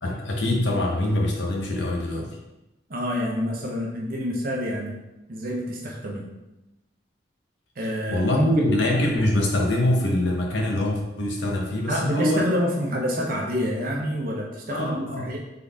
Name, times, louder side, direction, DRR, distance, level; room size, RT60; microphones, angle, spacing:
voice 1, 0.0-2.3 8.1-12.4 14.7-15.3, left 1 dB, 75° left, 0 dB, 1.0 m, -24 dB
voice 2, 2.9-5.0 5.3-6.3 7.8-8.5 11.9-15.4, equal, 50° right, -1 dB, 0.7 m, -27 dB
4.0 x 3.8 x 3.5 m, 0.97 s
head